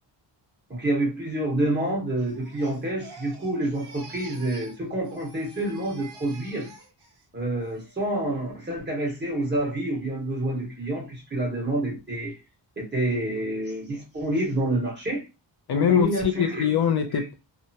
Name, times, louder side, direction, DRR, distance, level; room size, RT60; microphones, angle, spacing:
voice 1, 0.7-6.7 7.3-12.4 12.8-15.2 15.7-16.6, right 1 dB, 25° right, 1.4 m, -28 dB
Crying sobbing, 2.3-4.8 5.0-7.2 7.6-8.0, right 3 dB, 60° right, 1.1 m, -47 dB
voice 2, 15.7-17.3, left 8 dB, 60° left, 0.5 m, -23 dB
2.8 x 2.2 x 2.7 m
wide cardioid pair, 150°, 44 cm